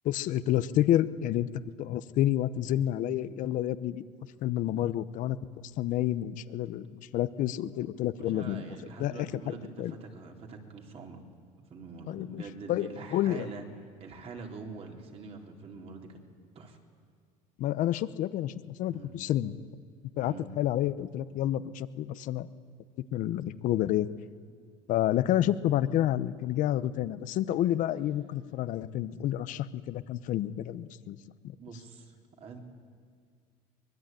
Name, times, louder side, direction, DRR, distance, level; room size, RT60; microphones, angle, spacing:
voice 1, 0.0-1.5 1.8-4.0 4.4-5.4 5.8-8.6 9.0-9.9 12.1-12.4 12.7-13.5 17.6-19.6 20.2-22.5 23.0-24.1 24.9-31.2, left 12 dB, 60° left, 15 dB, 0.9 m, -29 dB
voice 2, 8.2-11.2 11.7-13.7 14.0-16.2 16.6-16.8 18.9-19.2 20.2-20.5 25.3-25.5 31.6-32.6, right 4 dB, 40° right, 2 dB, 3.6 m, -45 dB
24.0 x 21.0 x 9.2 m, 2.1 s
cardioid pair, 125°, 15 cm